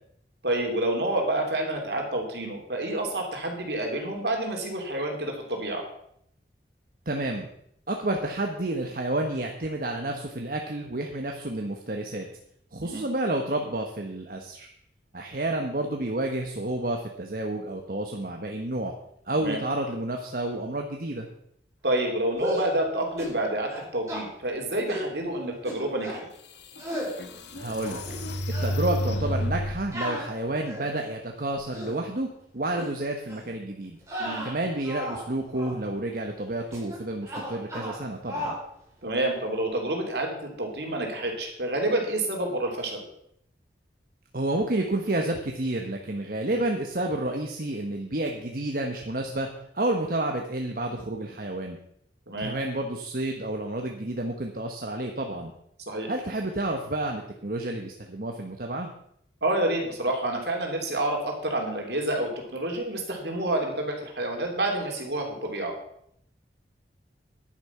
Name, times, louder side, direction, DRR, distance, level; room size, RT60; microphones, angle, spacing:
voice 1, 0.4-5.9 12.8-13.0 19.4-19.6 21.8-26.3 34.2-34.4 39.0-43.0 52.3-52.5 55.9-56.1 59.4-65.7, right 1 dB, 70° right, 2 dB, 3.1 m, -28 dB
voice 2, 7.1-7.5 7.9-12.3 12.7-14.7 15.1-18.9 19.3-21.3 27.6-28.0 28.6-34.0 34.4-38.6 44.3-49.5 49.7-51.8 52.4-55.5 56.1-58.9, right 1 dB, 55° right, 3 dB, 1.2 m, -30 dB
sound 1, 22.3-22.7 23.2-23.4 23.7-24.2 24.9-25.1 25.6-26.2 26.8-27.1 27.6-28.2 28.5-28.8 29.9-31.0 31.5-32.0 32.7-32.9 33.3-33.5 34.0-35.3 35.5-35.8 36.7-37.0 37.2-38.0 38.3-38.6, equal, 20° right, 4.9 m, -34 dB
sound 2, 26.1-26.2 26.8-29.9, equal, 80° left, 1.4 m, -30 dB
10.5 x 10.0 x 5.8 m, 0.72 s
head